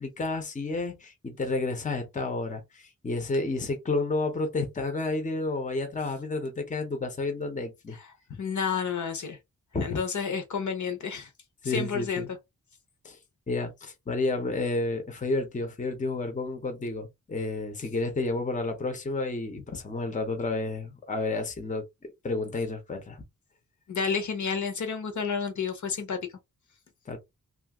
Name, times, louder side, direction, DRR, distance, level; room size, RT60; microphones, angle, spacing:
voice 1, 0.0-7.9 9.7-10.0 11.6-12.3 13.0-13.2 13.5-21.8 22.2-23.2 27.1-27.2, left 3 dB, 20° left, 0.7 m, -31 dB
voice 2, 7.9-9.4 9.8-11.3 11.6-12.2 23.9-26.2, left 6 dB, 55° left, 0.8 m, -30 dB
2.7 x 2.4 x 2.8 m
wide cardioid pair, 160°, 34 cm